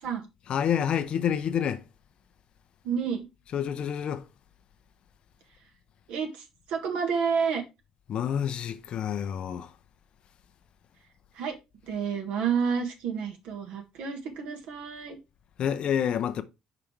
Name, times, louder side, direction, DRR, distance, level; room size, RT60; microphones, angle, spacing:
voice 1, 0.5-1.8 3.5-4.3 8.1-9.7 15.6-16.4, left 9 dB, 55° left, 0.6 m, -28 dB
voice 2, 2.8-3.3 6.1-7.6 11.3-11.6 11.9-15.2, right 6 dB, 65° right, 1.5 m, -30 dB
5.0 x 5.0 x 4.4 m
hypercardioid pair, 55°, 2 cm